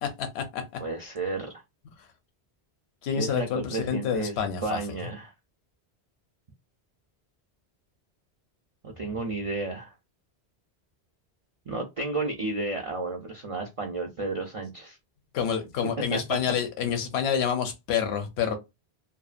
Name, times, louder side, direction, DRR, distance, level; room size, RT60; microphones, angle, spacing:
voice 1, 0.0-0.8 3.0-4.8 15.3-18.6, left 7 dB, 75° left, 0.9 m, -28 dB
voice 2, 0.8-1.6 3.2-4.3 4.6-5.3 8.8-9.9 11.7-15.0 16.1-16.2, right 3 dB, 50° right, 0.4 m, -32 dB
2.7 x 2.2 x 2.4 m
omnidirectional pair, 1.1 m